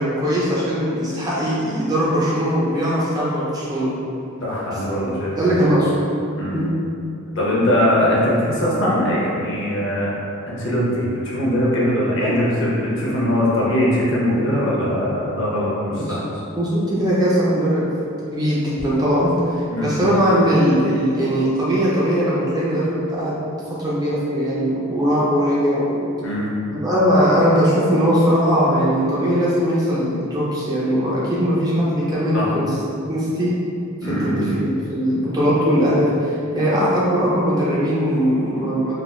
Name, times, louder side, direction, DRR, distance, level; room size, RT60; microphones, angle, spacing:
voice 1, 0.0-3.9 4.7-5.9 6.5-6.8 16.0-16.2 16.6-17.8 18.3-19.5 19.8-23.4 23.7-26.0 26.7-32.8 33.1-33.5 34.0-38.9, equal, 15° right, -8 dB, 0.4 m, -20 dB
voice 2, 4.4-5.5 6.4-6.6 7.4-10.1 10.5-16.3 19.7-19.9 26.2-26.5 32.3-32.4 34.0-34.6, equal, 55° left, -6 dB, 0.7 m, -21 dB
3.3 x 2.4 x 2.2 m, 2.6 s
head